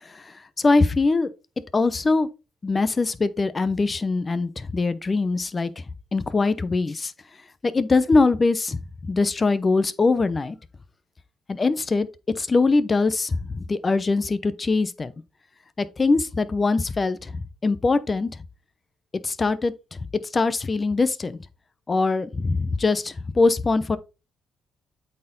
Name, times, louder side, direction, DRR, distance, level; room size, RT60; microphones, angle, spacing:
voice 1, 0.6-1.3 1.7-2.3 2.6-5.7 6.1-7.1 7.7-8.8 9.1-10.6 11.5-12.1 12.4-15.1 16.0-17.3 17.6-18.3 19.2-20.0 20.3-21.4 21.9-24.0, left 3 dB, 30° left, 0.8 m, -22 dB
8.2 x 4.5 x 4.0 m
cardioid pair, 90°, 0 cm